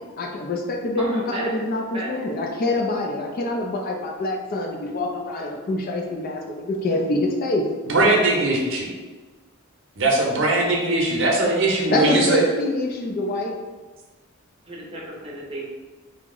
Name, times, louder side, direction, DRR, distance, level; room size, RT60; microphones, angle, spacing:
voice 1, 0.0-7.6 11.9-13.6, left 2 dB, 45° left, 1 dB, 0.4 m, -25 dB
voice 2, 1.0-1.5 1.9-2.1 14.6-15.7, right 1 dB, 25° right, -4 dB, 0.7 m, -33 dB
voice 3, 7.9-8.9 10.0-12.4, right 2 dB, 65° right, -2 dB, 0.7 m, -20 dB
2.9 x 2.0 x 3.7 m, 1.3 s
head